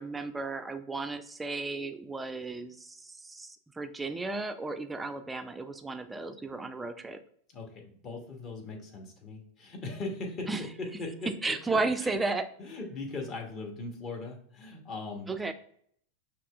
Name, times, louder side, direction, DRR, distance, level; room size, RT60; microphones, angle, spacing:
voice 1, 0.0-7.2 10.5-10.6 11.3-12.4 15.3-15.5, right 3 dB, 10° right, 8 dB, 0.3 m, -34 dB
voice 2, 7.5-12.2 12.6-15.5, left 3 dB, 30° left, 1 dB, 1.0 m, -39 dB
5.8 x 2.9 x 2.3 m, 0.63 s
figure-of-eight pair, 90°, 0 cm